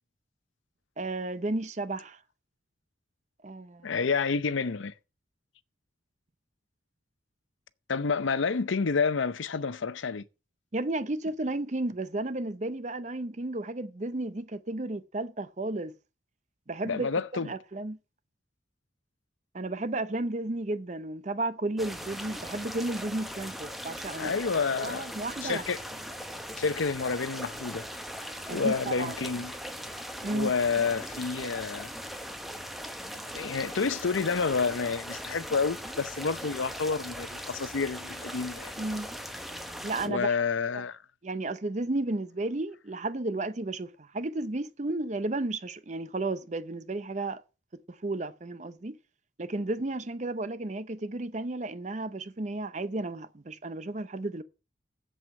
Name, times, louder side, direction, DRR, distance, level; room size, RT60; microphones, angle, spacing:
voice 1, 1.0-2.2 3.4-3.9 10.7-15.9 16.7-17.1 17.4-18.0 19.5-24.3 24.8-25.6 28.5-29.1 30.2-30.5 38.8-39.1 39.8-40.4 40.7-40.8 41.2-47.4 48.0-49.0 49.4-54.4, right 2 dB, 35° right, 0.6 m, -33 dB
voice 2, 3.8-4.9 7.9-10.2 16.8-17.5 24.2-25.1 25.4-25.8 26.6-27.8 28.5-29.6 30.3-31.9 33.3-38.7 40.0-41.0, left 5 dB, 85° left, 0.7 m, -29 dB
sound 1, 21.8-40.1, equal, ahead, 1.1 m, -40 dB
7.9 x 7.9 x 7.3 m
head